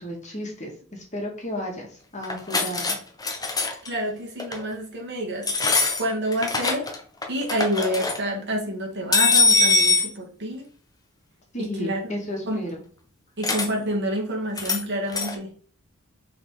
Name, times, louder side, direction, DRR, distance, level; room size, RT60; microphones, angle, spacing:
voice 1, 0.0-1.9 2.1-2.8 11.5-12.8, equal, 35° left, 0 dB, 2.2 m, -33 dB
sound 1, 2.2-3.0 3.2-3.9 4.4-4.6 5.4-7.0 7.2-8.2 9.1-10.1 13.4-13.7 14.6-14.8 15.1-15.3, left 3 dB, 20° left, 1.2 m, -22 dB
voice 2, 3.9-5.5 6.0-6.9 7.3-10.6 11.6-12.1 12.4-12.6 13.4-15.5, equal, 50° right, -1 dB, 2.4 m, -28 dB
5.9 x 4.4 x 5.0 m, 0.43 s
head